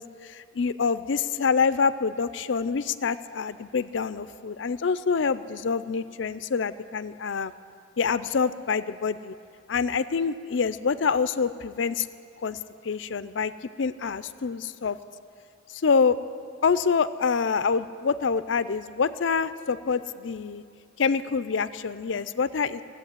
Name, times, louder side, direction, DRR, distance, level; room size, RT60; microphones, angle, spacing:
voice 1, 0.0-7.5 8.0-9.3 9.7-12.1 12.4-12.6 12.8-13.5 13.8-15.0 15.7-16.2 16.6-20.6 21.0-22.8, left 5 dB, 70° left, 14 dB, 0.5 m, -26 dB
17.5 x 8.1 x 9.8 m, 2.4 s
head